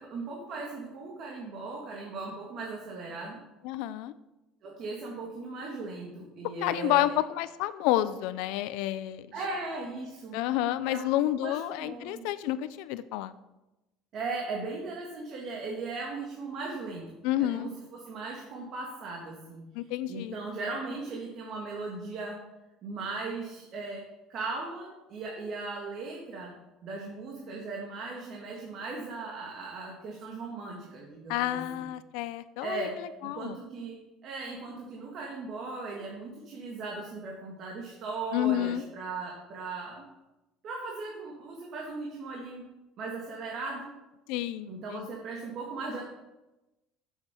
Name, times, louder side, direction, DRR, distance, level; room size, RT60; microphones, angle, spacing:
voice 1, 0.0-3.4 4.6-7.2 9.3-10.4 10.9-11.0 11.4-12.3 14.1-17.1 17.4-19.7 20.1-22.4 22.8-31.8 32.6-40.1 40.6-42.7 43.0-43.9 44.7-46.0, right 3 dB, 45° right, -1 dB, 1.9 m, -38 dB
voice 2, 3.6-4.1 6.6-9.3 10.3-13.3 17.2-17.7 19.7-20.4 31.3-33.6 38.3-38.8 44.3-45.1, left 13 dB, 80° left, 14 dB, 0.5 m, -30 dB
7.5 x 7.2 x 6.8 m, 1.0 s
cardioid pair, 140°, 0 cm